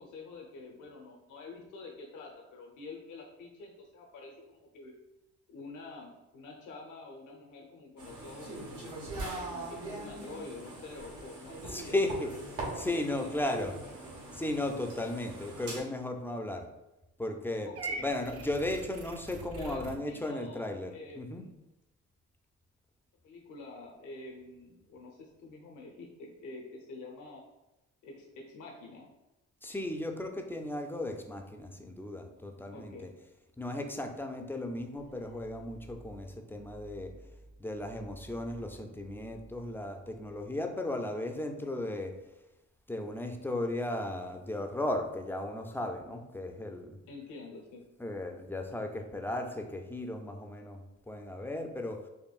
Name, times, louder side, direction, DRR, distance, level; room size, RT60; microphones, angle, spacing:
voice 1, 0.0-4.9 5.5-9.0 9.5-12.5 12.9-13.7 17.7-18.1 19.6-21.5 23.2-27.4 28.0-29.1 32.7-33.1 47.1-47.9, left 3 dB, 80° left, 0 dB, 0.7 m, -47 dB
sound 1, 8.0-15.8, right 2 dB, 90° right, 1.2 m, -42 dB
voice 2, 11.7-12.4 12.8-13.8 14.3-16.7 17.2-17.7 18.0-21.5 29.6-33.1 33.6-37.2 37.6-42.2 42.9-47.0 48.0-52.1, left 1 dB, 5° left, 4 dB, 0.4 m, -35 dB
Purr / Meow, 17.7-20.0, right 3 dB, 50° right, 0.6 m, -41 dB
sound 2, 35.0-40.9, right 1 dB, 70° right, 1.4 m, -55 dB
4.5 x 2.6 x 2.3 m, 0.97 s
cardioid pair, 90°, 30 cm